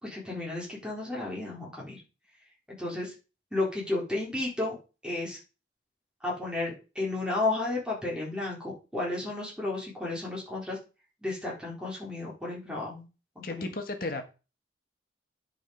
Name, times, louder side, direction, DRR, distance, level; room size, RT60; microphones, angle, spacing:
voice 1, 0.0-2.0 2.8-3.1 3.5-4.8 5.0-5.4 6.2-10.8 11.2-13.1 13.4-13.7, left 2 dB, 5° right, -4 dB, 3.7 m, -32 dB
voice 2, 13.4-14.2, left 2 dB, 50° left, 5 dB, 1.5 m, -34 dB
10.5 x 5.2 x 5.2 m, 0.31 s
head